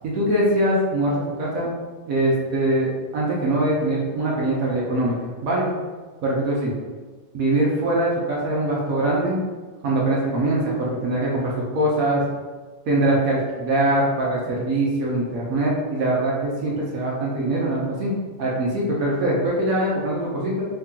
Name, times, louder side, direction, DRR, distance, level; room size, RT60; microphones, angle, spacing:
voice 1, 0.0-1.7 2.1-5.7 6.2-6.7 7.3-9.4 9.8-12.2 12.8-18.1 18.4-20.6, right 1 dB, 60° right, -4 dB, 0.9 m, -22 dB
3.4 x 2.8 x 3.7 m, 1.4 s
omnidirectional pair, 2.2 m